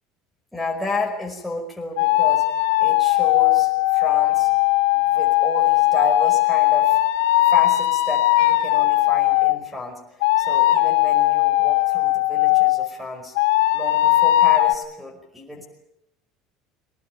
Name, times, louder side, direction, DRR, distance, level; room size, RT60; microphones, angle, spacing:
voice 1, 0.5-2.4 2.8-4.5 4.9-7.0 7.4-13.4 13.7-15.7, left 3 dB, ahead, -2 dB, 5.2 m, -31 dB
sound 1, 2.0-9.6 10.2-12.9 13.4-14.7, left 16 dB, 90° left, 1.3 m, -18 dB
22.0 x 19.0 x 9.3 m, 0.83 s
supercardioid pair, 125°, 0 cm